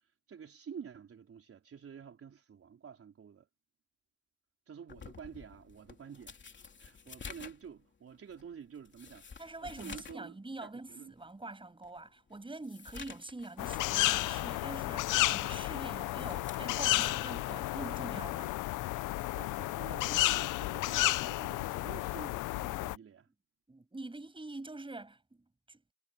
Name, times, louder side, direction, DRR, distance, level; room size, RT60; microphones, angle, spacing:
voice 1, 0.0-3.5 4.7-10.4 10.6-11.1 19.3-23.3, right 7 dB, 50° right, 4.1 m, -49 dB
sound 1, 4.9-10.3 10.6-10.7 11.3-11.4 11.8-14.1 14.4-14.7 15.9-17.8 18.9-19.2, left 5 dB, 40° left, 3.2 m, -51 dB
voice 2, 9.4-18.6 23.7-25.8, right 2 dB, 15° right, 6.7 m, -45 dB
sound 2, 13.6-23.0, left 18 dB, 85° left, 0.6 m, -32 dB
cardioid pair, 90°, 30 cm